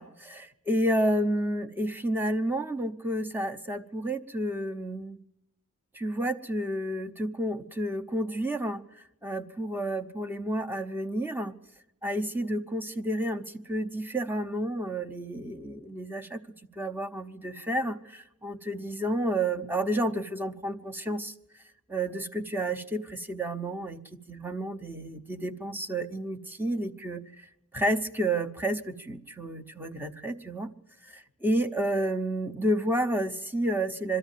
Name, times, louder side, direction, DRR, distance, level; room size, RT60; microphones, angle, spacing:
voice 1, 0.0-5.2 5.9-11.5 12.0-16.4 16.8-21.3 21.9-27.5 27.7-30.7 31.0-34.2, right 1 dB, 10° right, 6 dB, 0.8 m, -30 dB
23.0 x 13.0 x 9.2 m, 0.87 s
head